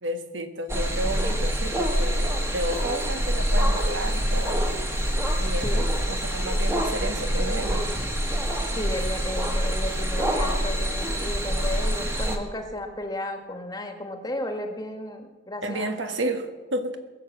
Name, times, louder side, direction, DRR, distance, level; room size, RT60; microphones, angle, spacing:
voice 1, 0.0-4.7 5.4-7.9 15.6-17.0, right 1 dB, 80° right, 7 dB, 1.5 m, -31 dB
sound 1, 0.7-12.4, equal, 15° right, 1.5 m, -25 dB
voice 2, 8.7-15.9, left 1 dB, 20° left, 5 dB, 1.4 m, -34 dB
21.5 x 7.2 x 7.3 m, 1.3 s
head